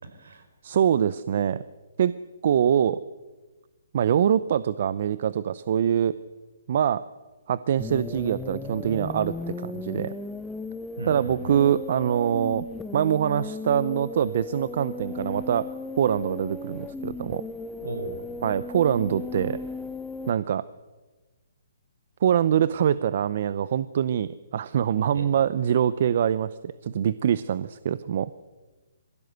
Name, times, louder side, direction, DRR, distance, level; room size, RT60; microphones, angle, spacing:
voice 1, 0.0-0.4 11.0-11.6 17.8-18.2 25.1-25.3, right 3 dB, 75° right, 7 dB, 4.7 m, -36 dB
voice 2, 0.6-1.6 2.0-2.1 2.4-3.0 3.9-6.1 6.7-7.0 7.5-10.1 11.1-12.6 12.9-15.7 16.0-17.4 18.4-19.6 20.3-20.7 22.2-28.3, right 9 dB, 55° right, 16 dB, 0.7 m, -24 dB
sound 1, 7.8-20.3, left 3 dB, 5° left, 0.7 m, -36 dB
23.0 x 15.5 x 8.0 m, 1.2 s
hypercardioid pair, 140°, 0 cm